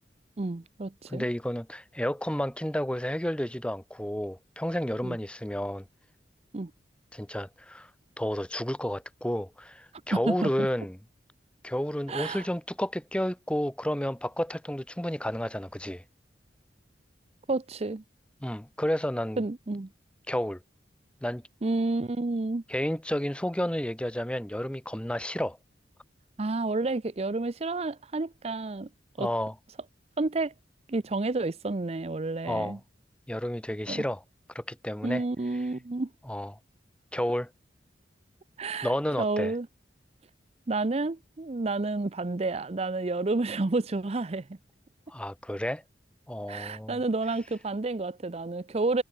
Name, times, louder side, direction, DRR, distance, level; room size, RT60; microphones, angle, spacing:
voice 1, 0.4-1.3 5.0-5.2 6.5-6.7 10.1-10.7 12.1-12.5 17.5-18.0 19.4-19.9 21.6-22.6 26.4-28.9 29.2-29.3 30.2-30.5 30.9-32.8 33.9-34.0 35.0-36.1 38.6-38.9 39.2-39.7 40.7-44.4 46.5-49.0, right 3 dB, 35° right, 0.6 m, -30 dB
voice 2, 1.1-5.9 7.1-7.9 8.2-11.0 11.6-16.0 18.4-19.4 20.3-20.6 21.2-21.4 22.7-25.6 29.2-29.5 32.4-32.8 33.3-34.2 34.5-35.3 36.2-36.6 37.1-37.5 38.8-39.5 45.1-45.8 46.3-47.0, equal, 5° left, 1.0 m, -31 dB
head